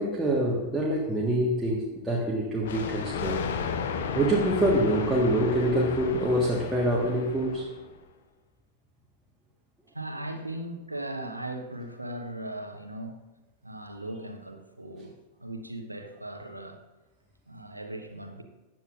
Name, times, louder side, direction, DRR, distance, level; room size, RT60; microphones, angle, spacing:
voice 1, 0.0-3.4 4.1-7.7, right 1 dB, 10° right, -5 dB, 1.5 m, -25 dB
Thunder, 2.6-8.0, left 6 dB, 60° left, 0.8 m, -33 dB
voice 2, 9.9-13.2 13.6-15.1 15.4-16.8 17.5-18.4, right 1 dB, 85° right, 5 dB, 1.0 m, -38 dB
14.5 x 9.1 x 2.5 m, 1.2 s
figure-of-eight pair, 90°, 0 cm